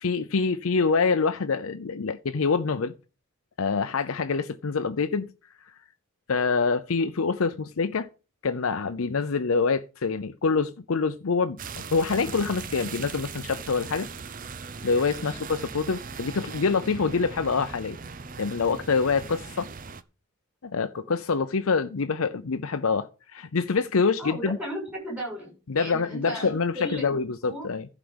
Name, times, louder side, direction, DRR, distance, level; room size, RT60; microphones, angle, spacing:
voice 1, 0.0-2.9 3.6-5.3 6.3-8.1 8.4-11.6 11.9-14.1 14.8-18.0 18.4-19.7 20.6-24.6 25.7-27.9, left 4 dB, 80° left, 0.6 m, -26 dB
sound 1, 11.6-20.0, right 5 dB, 40° right, 0.6 m, -39 dB
voice 2, 24.2-27.7, equal, 5° right, 6.8 m, -36 dB
11.5 x 5.0 x 7.9 m
head